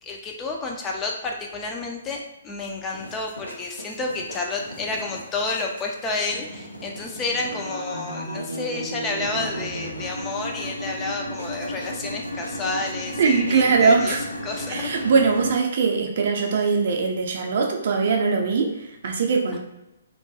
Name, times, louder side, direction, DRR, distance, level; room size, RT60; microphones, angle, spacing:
voice 1, 0.0-14.2 14.4-15.0, left 3 dB, 15° left, 1 dB, 0.3 m, -30 dB
sound 1, 2.9-15.6, equal, 90° left, 0.5 m, -35 dB
voice 2, 13.2-14.2 14.7-19.6, right 5 dB, 50° right, 2 dB, 0.4 m, -21 dB
2.3 x 2.2 x 2.7 m, 0.93 s
figure-of-eight pair, 125°, 0 cm